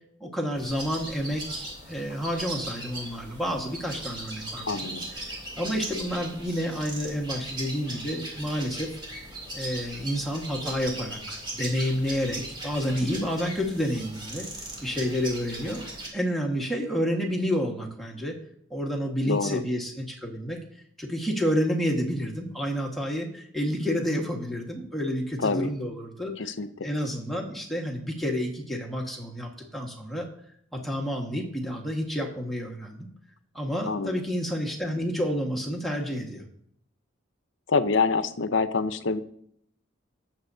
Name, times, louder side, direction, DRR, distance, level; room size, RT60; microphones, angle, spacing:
voice 1, 0.2-4.9 5.6-8.9 9.5-14.5 14.8-15.8 16.1-18.3 18.7-20.6 21.0-26.5 26.8-30.3 30.7-33.1 33.5-36.4, equal, ahead, -1 dB, 1.5 m, -29 dB
sound 1, 0.6-16.1, right 1 dB, 25° right, 3.0 m, -38 dB
voice 2, 4.7-5.1 13.0-13.3 19.3-19.6 25.4-25.7 26.4-26.9 33.9-34.2 37.7-39.2, left 4 dB, 70° left, 11 dB, 0.7 m, -26 dB
17.5 x 7.4 x 2.7 m, 0.69 s
head